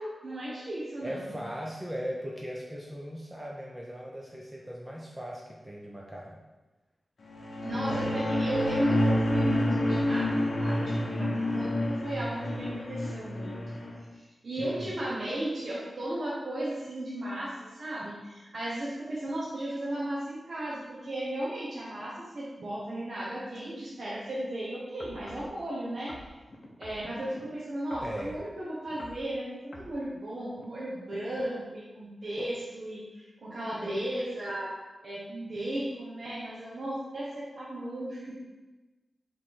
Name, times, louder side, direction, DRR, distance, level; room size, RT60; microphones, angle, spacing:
voice 1, 0.0-1.4 7.6-13.6 14.1-26.2 26.8-34.8 35.0-38.4, right 1 dB, 55° right, -7 dB, 0.9 m, -35 dB
voice 2, 1.0-6.4 7.7-8.2 14.6-14.9 28.0-28.4, equal, 15° right, -3 dB, 0.5 m, -38 dB
sound 1, 7.3-14.0, left 1 dB, 85° left, 0.7 m, -28 dB
sound 2, 25.0-25.5 26.1-27.4 27.9-28.4 28.9-29.2 29.7-29.9 30.6-30.7, left 1 dB, 50° left, 0.7 m, -47 dB
4.6 x 3.2 x 3.7 m, 1.2 s
wide cardioid pair, 110°, 0 cm